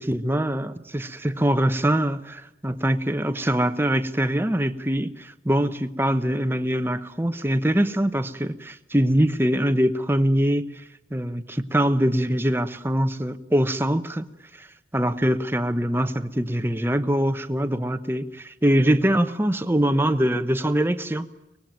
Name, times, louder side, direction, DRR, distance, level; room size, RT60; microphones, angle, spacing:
voice 1, 0.0-10.8 11.1-14.3 14.6-14.7 14.9-21.3, equal, 15° right, 0.9 m, -23 dB
24.5 x 20.5 x 9.2 m
head